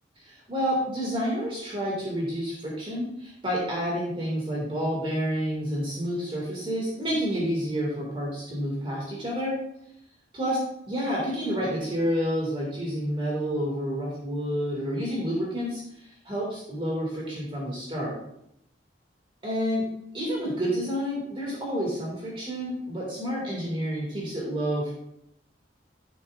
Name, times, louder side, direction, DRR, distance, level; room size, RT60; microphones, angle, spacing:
voice 1, 0.3-9.6 10.3-10.6 10.9-18.2 19.4-19.8 20.1-24.9, equal, 30° right, -3 dB, 2.0 m, -29 dB
10.5 x 7.1 x 2.4 m, 0.78 s
head